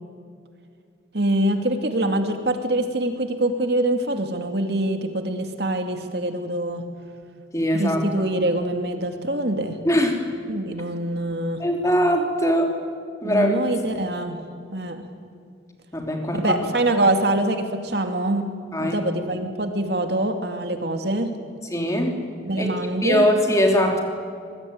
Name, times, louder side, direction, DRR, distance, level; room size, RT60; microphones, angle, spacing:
voice 1, 1.1-6.8 7.7-9.8 10.5-11.6 13.2-14.4 14.7-15.0 16.3-18.5 18.8-21.3 22.4-23.3, right 1 dB, 60° right, 5 dB, 2.5 m, -24 dB
voice 2, 7.5-8.0 9.8-10.2 11.6-12.8 13.2-13.5 15.9-16.5 18.7-19.0 21.7-22.2 22.6-22.7 23.0-24.0, equal, 15° left, 3 dB, 3.2 m, -21 dB
24.5 x 21.0 x 9.5 m, 2.3 s
head